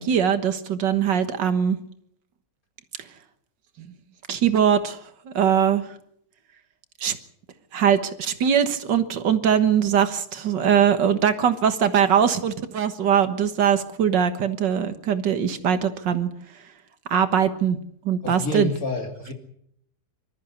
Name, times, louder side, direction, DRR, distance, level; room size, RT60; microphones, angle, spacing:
voice 1, 0.0-1.8 3.8-3.9 4.3-5.0 5.3-5.8 7.0-7.2 7.7-16.3 17.1-17.8 18.1-18.7, right 8 dB, 80° right, 10 dB, 2.1 m, -21 dB
voice 2, 18.2-19.3, left 2 dB, 50° left, 4 dB, 3.3 m, -28 dB
25.0 x 13.5 x 8.4 m, 0.72 s
omnidirectional pair, 1.9 m